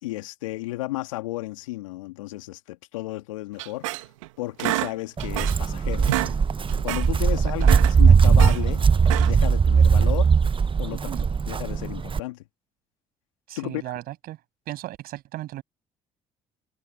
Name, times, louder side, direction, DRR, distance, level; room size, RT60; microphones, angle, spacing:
voice 1, 0.0-3.9 4.4-6.1 6.8-8.8 9.2-10.3 10.8-12.4 13.6-13.8, left 18 dB, 85° left, 2.4 m, -33 dB
sound 1, 3.6-4.3 4.6-5.7 6.0-6.4 6.7-7.1 7.5-8.6 9.0-9.5, right 19 dB, 80° right, 2.5 m, -29 dB
Walk footsteps, 5.2-12.2, right 6 dB, 30° right, 1.1 m, -19 dB
voice 2, 7.6-7.9 10.9-11.3 13.5-14.4 14.7-15.6, right 15 dB, 65° right, 7.5 m, -36 dB
hypercardioid pair, 50°, 16 cm